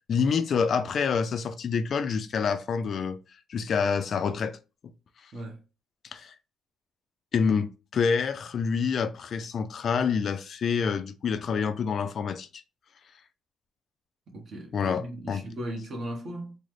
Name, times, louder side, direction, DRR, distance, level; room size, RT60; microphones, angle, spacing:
voice 1, 0.1-3.2 3.5-4.6 6.1-6.3 7.3-12.6 14.7-15.4, left 6 dB, 45° left, 0.3 m, -27 dB
voice 2, 14.3-16.6, right 1 dB, 45° right, 0.9 m, -37 dB
3.8 x 2.0 x 3.1 m
cardioid pair, 155°, 0 cm